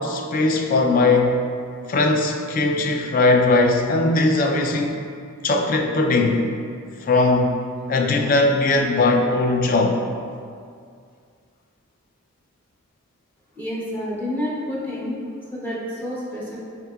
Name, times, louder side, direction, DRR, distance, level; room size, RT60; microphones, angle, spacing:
voice 1, 0.0-1.4 1.9-5.0 5.4-6.4 7.0-7.5 7.9-10.0, left 2 dB, 40° left, 3 dB, 0.3 m, -19 dB
voice 2, 13.6-15.2 15.5-16.6, left 1 dB, 10° left, -8 dB, 0.6 m, -29 dB
5.8 x 2.7 x 2.2 m, 2.2 s
head